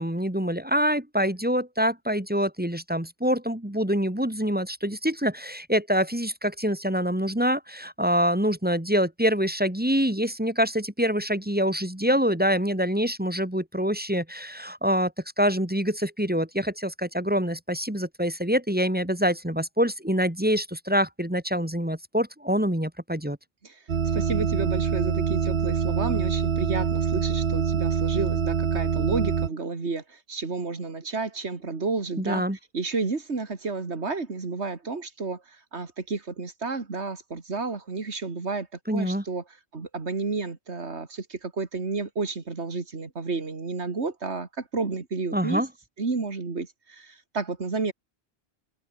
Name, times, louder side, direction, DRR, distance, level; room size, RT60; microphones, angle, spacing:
voice 1, 0.0-15.1 15.4-23.4 32.2-32.6 38.9-39.2 45.3-45.7, equal, 10° right, 1.9 m, -25 dB
voice 2, 23.6-32.4 32.7-39.4 39.7-45.6 46.0-47.9, right 4 dB, 90° right, 2.7 m, -31 dB
sound 1, 23.9-29.5, right 6 dB, 65° right, 1.4 m, -25 dB
omnidirectional pair, 1.1 m